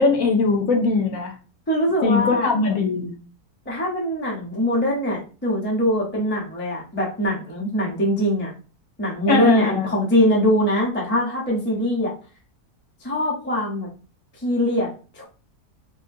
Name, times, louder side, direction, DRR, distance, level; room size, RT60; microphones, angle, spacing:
voice 1, 0.0-1.3 2.0-3.1 9.3-9.9, left 4 dB, 65° left, 2 dB, 1.0 m, -20 dB
voice 2, 1.7-2.5 3.7-8.5 9.0-12.1 13.0-13.9 14.4-15.3, equal, 10° left, -2 dB, 0.6 m, -22 dB
3.6 x 2.6 x 2.6 m, 0.36 s
omnidirectional pair, 1.6 m